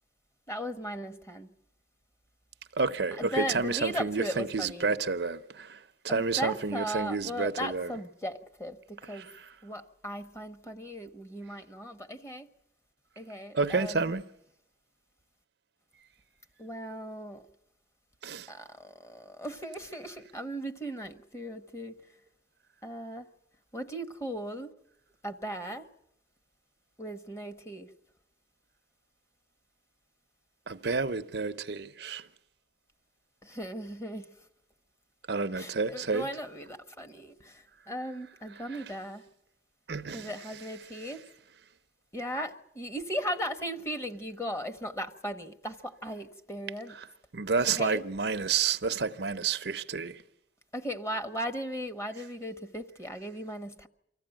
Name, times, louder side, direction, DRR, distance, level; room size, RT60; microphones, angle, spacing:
voice 1, 0.5-1.5 3.2-4.9 6.1-9.3 9.6-12.5 13.2-14.1 16.6-17.4 18.5-21.9 22.8-23.3 23.7-24.7 25.2-25.9 27.0-27.9 33.4-34.3 35.6-39.3 40.1-41.2 42.1-47.0 47.7-48.0 50.7-53.9, equal, 15° left, 1.1 m, -37 dB
voice 2, 2.8-5.8 6.0-7.9 9.2-9.3 13.5-14.2 18.2-18.5 30.7-32.2 35.3-36.3 38.7-38.8 39.9-40.3 47.3-50.2, right 4 dB, 65° right, 0.7 m, -30 dB
25.0 x 15.0 x 8.9 m
head